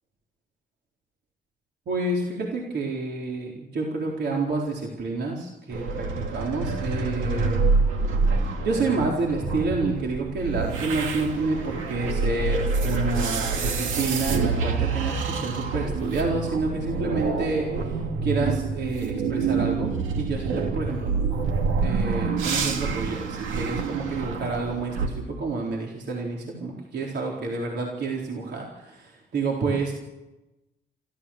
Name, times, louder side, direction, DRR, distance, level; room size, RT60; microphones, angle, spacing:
voice 1, 1.9-7.6 8.3-18.0 18.2-21.1 21.8-30.0, right 3 dB, 60° right, -2 dB, 4.2 m, -29 dB
sound 1, 5.7-25.1, right 4 dB, 90° right, 2.6 m, -27 dB
27.5 x 13.5 x 7.4 m, 1.0 s
cardioid pair, 90°, 20 cm